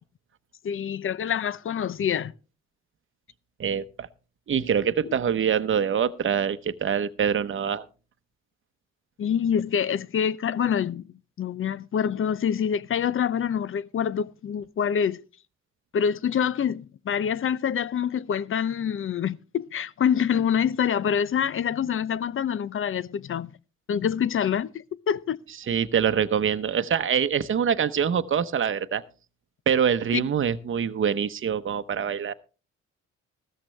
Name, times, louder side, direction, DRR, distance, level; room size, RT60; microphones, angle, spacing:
voice 1, 0.6-2.3 5.0-5.1 9.2-11.0 11.4-15.2 15.9-23.5 23.9-25.4 30.1-30.2, left 8 dB, 45° left, 0.6 m, -26 dB
voice 2, 3.6-4.1 4.5-7.8 25.7-29.0 29.7-32.3, right 7 dB, 40° right, 0.9 m, -25 dB
15.0 x 13.5 x 3.3 m
cardioid pair, 90°, 30 cm